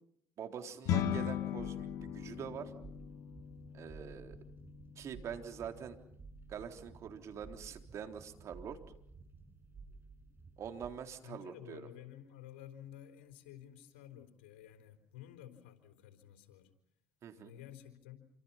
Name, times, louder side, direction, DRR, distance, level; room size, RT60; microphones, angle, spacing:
voice 1, 0.4-2.7 3.7-4.4 5.0-6.0 6.5-8.8 10.6-11.9 17.2-17.5, right 8 dB, 55° right, 5 dB, 3.7 m, -45 dB
sound 1, 0.9-10.3, left 10 dB, 70° left, 2.1 m, -41 dB
sound 2, 1.3-10.9, right 4 dB, 35° right, 6.9 m, -55 dB
voice 2, 11.2-16.7 17.4-18.3, left 11 dB, 85° left, 7 dB, 4.2 m, -52 dB
28.0 x 26.0 x 5.8 m, 0.69 s
supercardioid pair, 70°, 6 cm